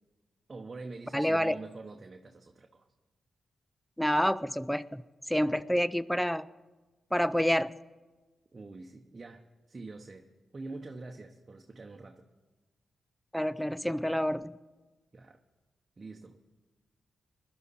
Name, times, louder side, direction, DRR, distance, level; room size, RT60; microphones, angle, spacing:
voice 1, 0.5-2.9 8.5-10.3 10.5-12.2 15.1-15.4 16.0-16.4, right 3 dB, 40° right, 3 dB, 1.0 m, -45 dB
voice 2, 1.1-1.6 4.0-5.0 5.3-6.5 7.1-7.7 13.3-14.5, equal, 5° left, 18 dB, 0.4 m, -28 dB
20.5 x 11.5 x 4.2 m, 1.2 s
supercardioid pair, 45°, 0 cm